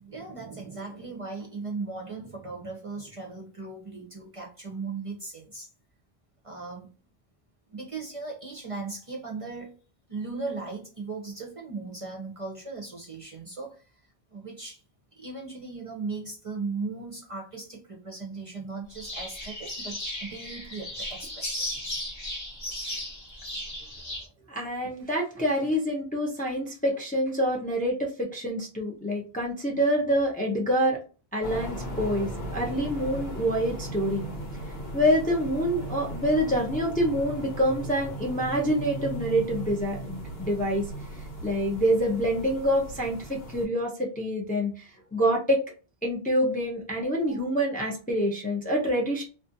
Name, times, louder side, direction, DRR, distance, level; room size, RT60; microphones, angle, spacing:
voice 1, 0.0-5.7 6.4-6.9 7.7-9.7 10.1-13.8 14.3-14.8 15.2-21.8 22.9-23.0 24.0-24.3, right 4 dB, 40° right, -1 dB, 0.6 m, -37 dB
sound 1, 18.9-24.3, left 1 dB, 30° left, 0.8 m, -36 dB
voice 2, 24.5-31.0 31.3-34.2 34.9-40.9 41.4-45.6 46.0-49.2, equal, 10° left, -1 dB, 0.5 m, -26 dB
sound 2, 31.4-43.7, right 1 dB, 75° left, 1.1 m, -37 dB
2.4 x 2.4 x 2.6 m, 0.35 s
omnidirectional pair, 1.1 m